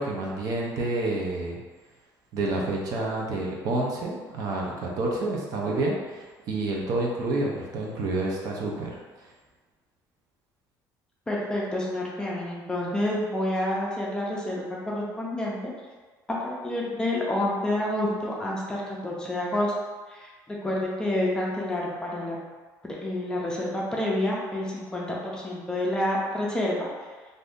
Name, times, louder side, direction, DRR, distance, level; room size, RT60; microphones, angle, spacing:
voice 1, 0.0-1.6 2.3-8.9, right 2 dB, 55° right, -2 dB, 0.6 m, -29 dB
voice 2, 11.3-15.6 16.4-19.7 20.1-22.4 22.8-26.9, left 1 dB, 10° left, -4 dB, 0.5 m, -28 dB
2.6 x 2.6 x 3.5 m, 1.4 s
cardioid pair, 155°, 8 cm